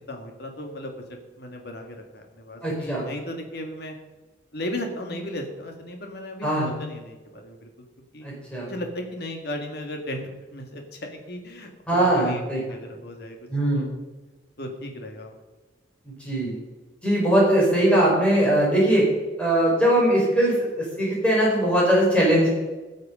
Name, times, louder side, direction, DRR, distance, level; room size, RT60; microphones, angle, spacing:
voice 1, 0.1-0.9 1.4-4.0 4.5-6.5 6.8-7.7 8.1-8.3 8.7-13.4 13.7-13.9 14.6-15.4, left 1 dB, 55° left, 3 dB, 1.9 m, -35 dB
voice 2, 2.6-3.1 6.4-6.7 8.2-8.7 11.9-12.6 13.5-13.9 16.1-16.6 17.0-19.1 19.4-22.5, right 1 dB, 5° left, -5 dB, 4.4 m, -21 dB
18.5 x 6.5 x 5.4 m, 1.2 s
head